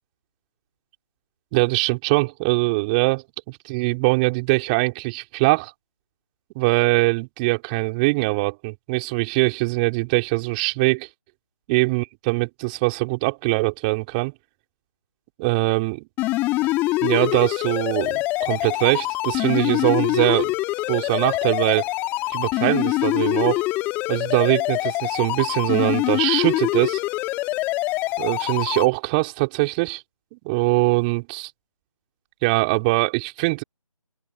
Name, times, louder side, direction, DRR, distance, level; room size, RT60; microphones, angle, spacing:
voice 1, 1.5-5.7 6.6-11.1 11.7-14.3 15.4-16.1 17.0-20.5 20.9-21.9 22.3-23.6 24.1-27.0 28.2-30.0 30.3-31.5 32.4-33.6, right 27 dB, 15° right, 5.4 m, -22 dB
sound 1, 16.2-28.9, left 20 dB, 10° left, 3.4 m, -24 dB
figure-of-eight pair, 155°, 18 cm